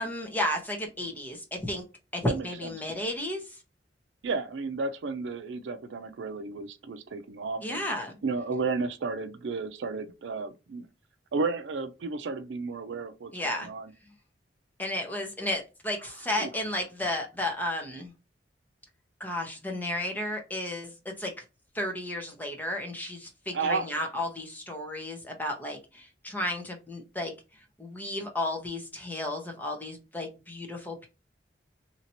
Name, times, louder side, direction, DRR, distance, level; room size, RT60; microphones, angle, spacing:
voice 1, 0.0-1.8 2.1-3.6 7.6-8.2 13.3-13.7 14.8-18.1 19.2-21.3 21.7-27.3 27.8-31.1, left 1 dB, 10° left, 0.9 m, -33 dB
voice 2, 4.2-7.8 8.2-10.9 11.3-13.9 16.4-16.5 23.5-24.0, right 4 dB, 80° right, 0.4 m, -33 dB
2.9 x 2.8 x 2.7 m
head